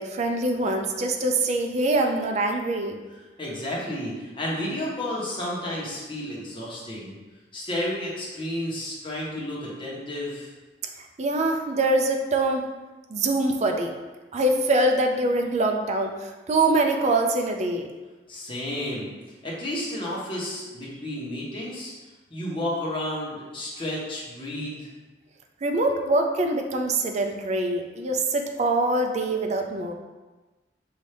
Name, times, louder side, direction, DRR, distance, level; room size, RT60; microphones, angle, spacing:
voice 1, 0.0-3.0 11.0-12.7 13.1-13.9 14.3-17.9 25.6-29.9, right 2 dB, 40° right, 3 dB, 0.4 m, -24 dB
voice 2, 3.4-7.1 7.5-10.5 18.3-19.1 19.4-21.9 22.3-24.9, left 1 dB, 30° left, -6 dB, 1.1 m, -31 dB
5.5 x 2.7 x 3.3 m, 1.2 s
head